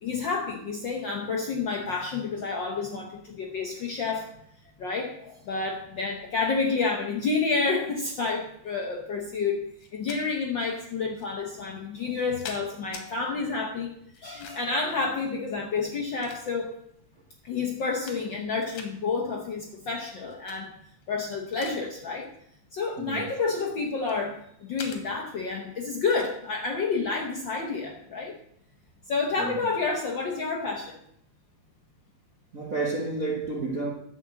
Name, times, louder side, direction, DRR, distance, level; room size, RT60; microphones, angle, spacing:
voice 1, 0.0-4.3 4.8-16.7 17.4-20.7 21.1-22.3 22.7-28.4 29.1-31.0, left 4 dB, 60° left, 1.2 m, -29 dB
sound 1, 9.8-10.2 11.1-11.3 12.0-13.1 14.1-14.8 15.7-16.8 17.4-17.5 17.8-18.4 18.7-18.9 20.3-20.6 21.0-21.8 22.1-22.4 23.1-24.2 24.8-25.0 26.1-26.3, left 5 dB, 80° left, 2.9 m, -43 dB
voice 2, 32.5-33.9, right 3 dB, 50° right, 1.0 m, -30 dB
12.0 x 5.1 x 7.6 m
omnidirectional pair, 3.3 m